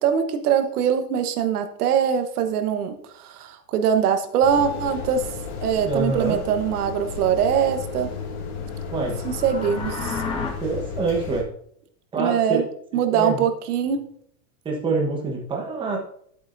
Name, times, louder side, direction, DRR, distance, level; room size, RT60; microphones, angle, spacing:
voice 1, 0.0-5.2 5.6-8.1 9.0-10.2 12.2-12.6 12.9-14.0, right 8 dB, 85° right, 7 dB, 1.3 m, -22 dB
sound 1, 4.4-11.4, left 5 dB, 85° left, 2.4 m, -33 dB
voice 2, 5.8-6.4 8.9-9.2 10.6-11.5 12.1-12.6 13.1-13.4 14.6-16.0, right 3 dB, 10° right, -1 dB, 1.2 m, -25 dB
sound 2, 9.1-10.5, left 4 dB, 10° left, 0.5 m, -31 dB
11.0 x 8.1 x 2.6 m, 0.66 s
supercardioid pair, 165°, 44 cm